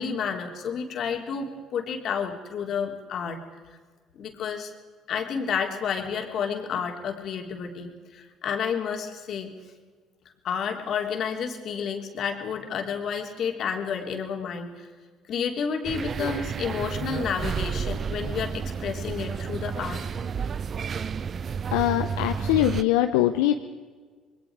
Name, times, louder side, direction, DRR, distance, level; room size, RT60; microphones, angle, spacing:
voice 1, 0.0-3.4 4.1-4.7 5.1-9.5 10.4-14.9 15.3-20.0, left 6 dB, 60° left, 3 dB, 3.4 m, -30 dB
sound 1, 15.8-22.8, right 6 dB, 45° right, 0.6 m, -31 dB
voice 2, 21.7-23.5, left 13 dB, 85° left, 7 dB, 0.8 m, -22 dB
27.0 x 21.5 x 4.8 m, 1.5 s
hypercardioid pair, 65°, 0 cm